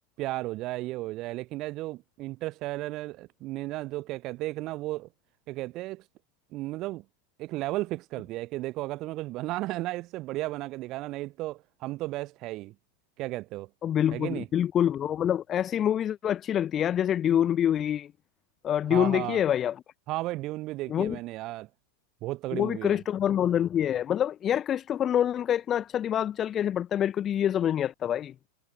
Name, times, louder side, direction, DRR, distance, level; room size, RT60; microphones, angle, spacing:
voice 1, 0.2-5.1 5.5-6.1 6.5-7.0 7.4-12.7 13.2-13.7 14.1-14.5 18.9-19.4 20.1-21.7 22.2-23.0, right 18 dB, 40° right, 1.1 m, -34 dB
voice 2, 13.8-18.1 18.6-19.7 20.9-21.2 22.5-28.3, left 10 dB, 25° left, 0.9 m, -26 dB
figure-of-eight pair, 90°, 0 cm